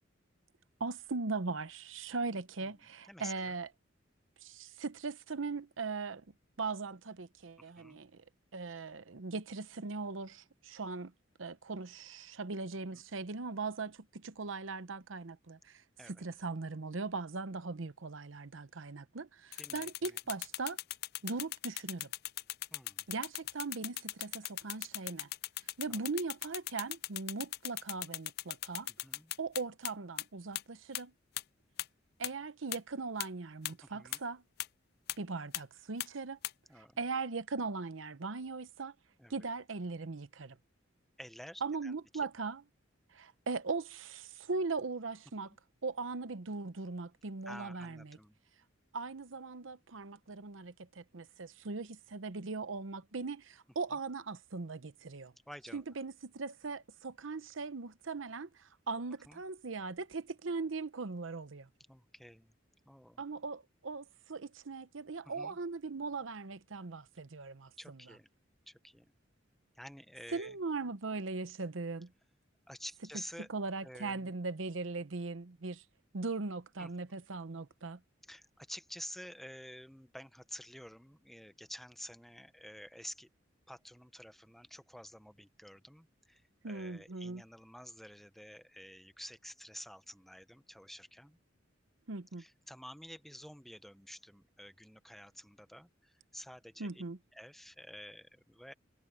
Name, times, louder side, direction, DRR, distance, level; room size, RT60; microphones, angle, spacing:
voice 1, 0.8-3.7 4.4-6.2 6.6-8.2 8.5-11.1 11.4-15.8 16.1-20.8 21.2-22.1 23.1-25.3 25.8-28.9 29.4-31.1 32.2-34.4 35.2-36.4 36.8-38.9 39.3-40.6 41.6-42.6 43.1-45.5 45.8-48.2 48.9-55.3 55.7-61.7 63.2-68.0 70.3-72.1 73.5-75.8 76.1-78.0 86.6-87.4 92.1-92.4 96.8-97.2, right 4 dB, 85° right, 0.9 m, -39 dB
voice 2, 3.1-3.6 7.6-8.0 16.0-16.2 19.6-20.2 22.7-23.1 25.9-26.0 28.9-29.3 33.8-34.2 36.7-37.0 39.2-39.5 41.2-41.9 45.4-45.6 47.5-48.4 53.9-54.0 55.5-55.8 59.3-59.4 61.9-62.5 62.8-63.2 65.2-65.6 67.8-68.3 68.7-69.1 69.7-70.6 72.7-73.5 73.8-74.3 76.8-77.2 78.2-83.3 83.7-91.4 92.4-97.0 97.3-98.7, equal, ahead, 1.0 m, -50 dB
sound 1, 19.5-29.9 30.2-30.3 30.6-30.7 31.0-31.1 31.4-31.5 31.8-31.9 32.2-32.3 32.7-32.8 33.2-33.3 33.7-33.8 34.1-34.2 34.6-34.7 35.1-35.2 35.5-35.6 36.0-36.1 36.4-36.5, left 16 dB, 55° left, 0.4 m, -38 dB
head